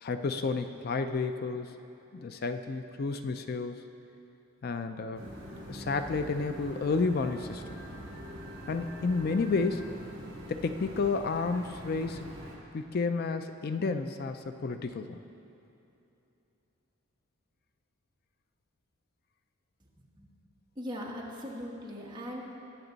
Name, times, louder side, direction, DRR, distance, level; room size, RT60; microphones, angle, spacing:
voice 1, 0.0-1.8 2.1-3.8 4.6-5.2 5.5-7.6 8.7-9.9 10.5-12.3 12.7-15.2, left 4 dB, 50° left, 8 dB, 0.4 m, -31 dB
sound 1, 5.1-12.6, equal, 65° right, 3.1 m, -44 dB
voice 2, 20.7-22.4, equal, 20° right, -3 dB, 1.5 m, -39 dB
21.0 x 7.0 x 4.0 m, 2.9 s
head